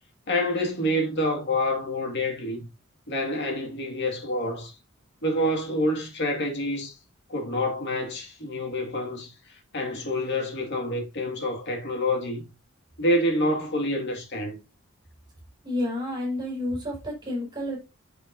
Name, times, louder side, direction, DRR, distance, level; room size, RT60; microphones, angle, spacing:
voice 1, 0.3-2.7 3.1-4.8 5.2-6.9 7.3-12.4 13.0-14.6, left 1 dB, 55° left, 2.2 m, -27 dB
voice 2, 15.6-17.8, left 1 dB, 20° right, 5.0 m, -30 dB
8.3 x 6.8 x 2.7 m
head